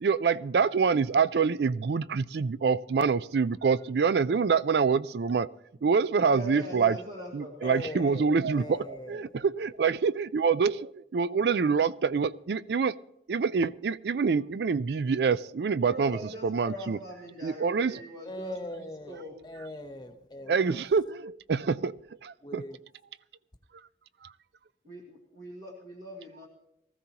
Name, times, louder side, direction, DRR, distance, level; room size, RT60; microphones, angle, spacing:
voice 1, 0.0-5.5 5.8-7.0 7.3-13.0 13.3-17.0 17.4-18.0 20.5-22.0 22.2-22.6, right 5 dB, 70° right, 0.4 m, -26 dB
voice 2, 6.2-7.6 15.8-19.4 24.8-26.5, equal, 50° right, 2.1 m, -42 dB
voice 3, 7.6-9.4 18.2-20.8 22.4-22.8, left 1 dB, 25° left, 0.9 m, -41 dB
19.5 x 14.5 x 2.9 m
head